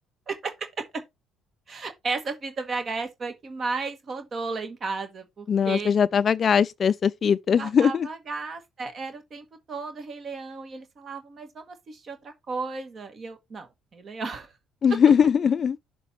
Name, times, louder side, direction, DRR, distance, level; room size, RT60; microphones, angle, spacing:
voice 1, 0.3-1.0 1.7-5.9 7.5-14.5, right 4 dB, 45° right, 1.4 m, -34 dB
voice 2, 5.5-8.1 14.8-15.8, left 7 dB, 45° left, 0.3 m, -20 dB
6.8 x 4.0 x 4.3 m
hypercardioid pair, 60°, 0 cm